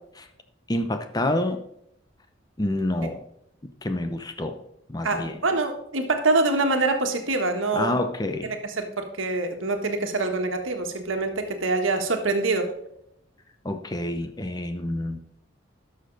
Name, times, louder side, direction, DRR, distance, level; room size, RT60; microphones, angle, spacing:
voice 1, 0.7-1.6 2.6-3.2 3.8-5.4 7.7-8.5 13.6-15.2, left 1 dB, 20° left, 8 dB, 0.7 m, -28 dB
voice 2, 5.0-7.9 8.4-12.7, right 3 dB, 85° right, 5 dB, 1.5 m, -25 dB
12.0 x 6.6 x 4.0 m, 0.76 s
head